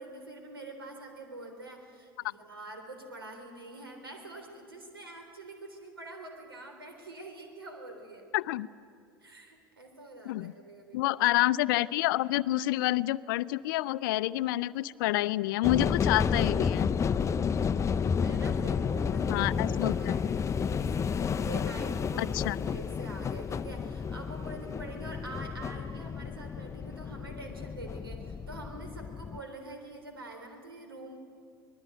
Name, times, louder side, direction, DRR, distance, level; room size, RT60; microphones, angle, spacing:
voice 1, 0.0-8.2 9.2-11.2 17.4-20.3 20.6-31.2, right 2 dB, 90° right, 4 dB, 3.6 m, -45 dB
voice 2, 8.3-8.7 10.2-10.5 10.9-16.9 19.3-19.9 22.2-22.6, left 16 dB, 65° left, 17 dB, 0.6 m, -28 dB
sound 1, 15.6-29.4, left 6 dB, 25° left, 0.6 m, -31 dB
25.5 x 19.5 x 9.1 m, 2.4 s
hypercardioid pair, 75°, 12 cm